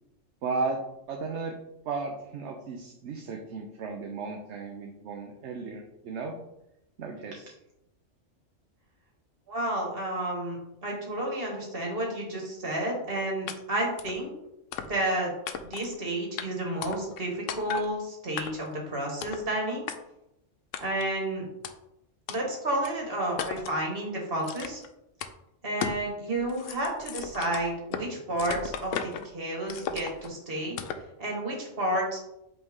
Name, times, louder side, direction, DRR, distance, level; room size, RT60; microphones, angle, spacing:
voice 1, 0.4-0.8 1.1-1.6 1.8-6.4 7.0-7.5, right 4 dB, 70° right, 2 dB, 1.0 m, -34 dB
voice 2, 9.5-14.3 14.9-15.3 15.7-19.8 20.8-21.4 22.3-24.8 25.6-30.8 31.2-32.2, right 1 dB, 50° right, -1 dB, 1.8 m, -31 dB
sound 1, 13.5-13.6 14.0-14.2 14.7-15.1 15.5-15.9 16.4-16.5 16.8-17.2 17.5-17.9 18.4-18.7 19.2-19.5 19.9-20.0 20.7-21.1 21.6-21.7 22.3-22.4 22.8-22.9 23.4-23.8 24.4-24.9 25.2-25.3 25.8-26.1 26.4-28.1 28.4-29.3 29.7-30.3 30.8-31.1, left 8 dB, 85° left, 0.9 m, -36 dB
7.9 x 3.3 x 3.6 m, 0.86 s
omnidirectional pair, 1.3 m